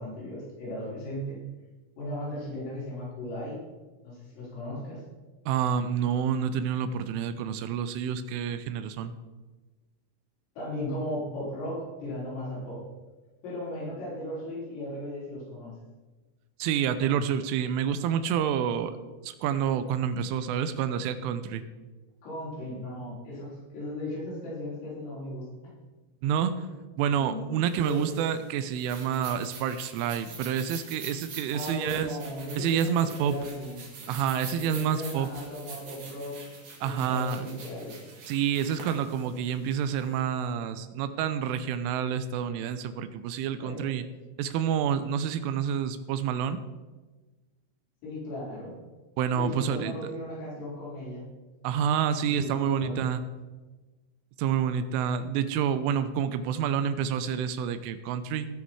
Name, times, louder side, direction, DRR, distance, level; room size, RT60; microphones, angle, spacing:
voice 1, 0.0-1.4 2.0-3.6 4.0-5.0 10.6-12.9 13.4-15.8 22.2-25.5 27.1-28.2 31.5-33.8 34.7-36.5 36.8-38.0 43.6-43.9 48.0-48.7 49.3-51.2 52.2-53.0, left 1 dB, 90° left, -7 dB, 7.6 m, -36 dB
voice 2, 5.5-9.1 16.6-18.9 19.2-21.6 26.2-26.7 27.0-32.2 32.6-33.4 34.1-35.3 36.8-37.5 38.3-44.1 44.4-46.6 49.2-50.0 51.6-53.2 54.4-58.5, right 8 dB, 85° right, 11 dB, 3.1 m, -28 dB
sound 1, 27.7-40.1, right 4 dB, 55° right, 1.7 m, -45 dB
19.0 x 6.6 x 4.7 m, 1.2 s
omnidirectional pair, 5.7 m